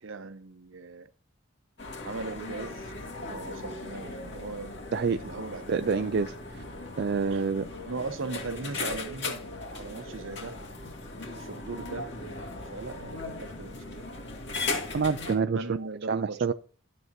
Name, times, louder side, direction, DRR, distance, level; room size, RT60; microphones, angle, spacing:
voice 1, 0.0-1.1 2.0-4.8 5.2-6.1 7.3-7.5 7.8-9.4 9.7-10.6 11.2-12.1 12.7-14.0 15.4-16.5, right 3 dB, 65° right, 0.8 m, -39 dB
sound 1, 1.8-15.4, left 3 dB, 55° left, 2.4 m, -38 dB
voice 2, 5.7-6.6 7.0-7.7 14.9-15.8 16.1-16.5, right 5 dB, 50° right, 0.4 m, -27 dB
12.5 x 7.7 x 2.7 m
head